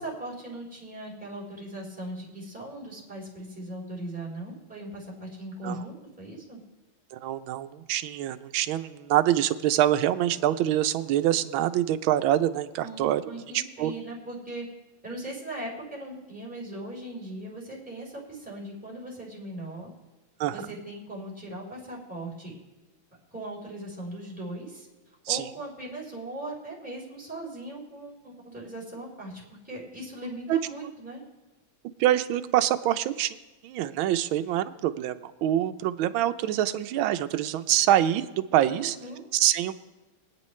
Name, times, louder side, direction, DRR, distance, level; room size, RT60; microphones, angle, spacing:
voice 1, 0.0-6.6 12.8-14.6 15.0-19.9 20.5-22.5 23.3-24.9 25.3-31.2 38.7-39.2, right 1 dB, 5° right, -5 dB, 3.4 m, -39 dB
voice 2, 7.1-13.2 13.5-13.9 20.4-20.7 25.3-25.4 30.5-30.6 32.0-33.4 33.6-39.0 39.3-39.7, right 12 dB, 75° right, 10 dB, 1.4 m, -25 dB
23.5 x 9.2 x 3.2 m, 1.1 s
omnidirectional pair, 2.3 m